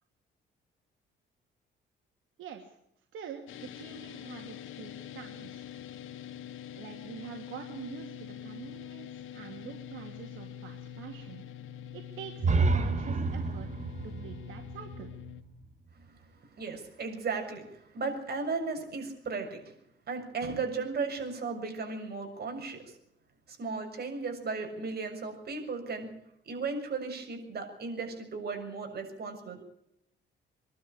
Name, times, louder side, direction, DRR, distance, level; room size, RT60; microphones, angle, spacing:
voice 1, 3.1-5.7 6.7-11.4 11.9-15.1, right 8 dB, 80° right, 3 dB, 2.7 m, -45 dB
sound 1, 3.5-15.4, left 10 dB, 85° left, 2.1 m, -45 dB
sound 2, 12.4-16.2, right 3 dB, 35° right, 2.2 m, -30 dB
voice 2, 16.6-19.7 20.1-23.0 23.5-26.1 26.4-29.6, right 4 dB, 55° right, 4 dB, 6.9 m, -35 dB
24.5 x 12.5 x 8.8 m, 0.77 s
cardioid pair, 90°, 20 cm